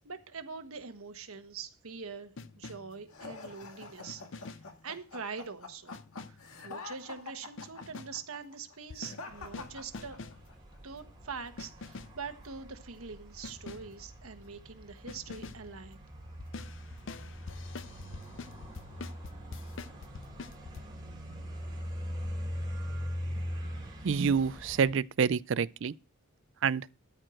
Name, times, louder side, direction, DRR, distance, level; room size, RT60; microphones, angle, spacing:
voice 1, 0.0-4.6 4.8-6.0 6.3-10.2 10.8-16.0, right 5 dB, 80° right, 1.3 m, -44 dB
sound 1, 2.4-3.0 4.1-4.8 5.9-6.5 7.6-8.3 8.9-10.5 11.6-12.3 13.4-14.0 15.1-15.7 16.4-20.8, left 4 dB, 55° left, 0.5 m, -45 dB
sound 2, 3.1-10.5, left 4 dB, 85° left, 1.9 m, -46 dB
sound 3, 9.3-24.9, equal, 20° right, 3.3 m, -42 dB
voice 2, 24.0-25.9 26.6-26.9, right 6 dB, 60° right, 0.4 m, -28 dB
13.5 x 4.5 x 6.3 m
head